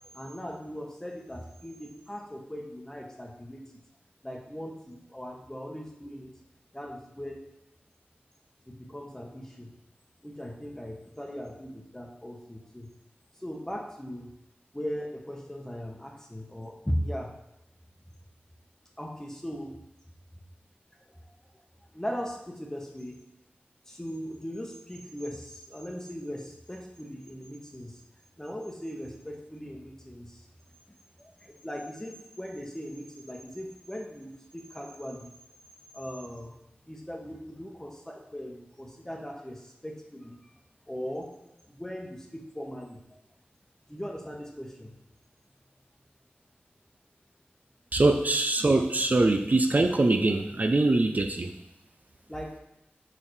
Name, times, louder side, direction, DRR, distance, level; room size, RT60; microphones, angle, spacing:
voice 1, 0.0-3.6 4.2-6.3 6.7-7.4 8.7-9.7 10.2-12.9 13.4-14.3 14.7-17.3 19.0-19.7 21.1-21.2 21.9-23.1 23.9-28.0 28.4-30.5 31.2-35.3 35.9-36.5 36.9-40.5 40.9-41.3 41.7-43.0 43.9-44.9 52.3-52.5, equal, 15° left, 1 dB, 1.0 m, -39 dB
voice 2, 47.9-51.5, right 2 dB, 45° right, 5 dB, 0.5 m, -23 dB
6.7 x 5.5 x 3.2 m, 0.88 s
wide cardioid pair, 70°, 4 cm